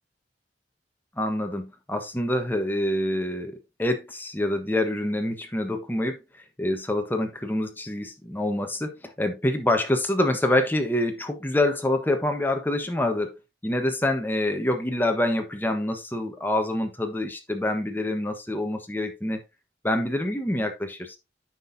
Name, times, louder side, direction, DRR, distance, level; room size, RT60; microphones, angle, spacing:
voice 1, 1.2-6.2 6.6-13.4 13.6-19.4 19.8-21.2, left 1 dB, 10° left, 1.2 m, -26 dB
9.1 x 6.2 x 2.7 m
head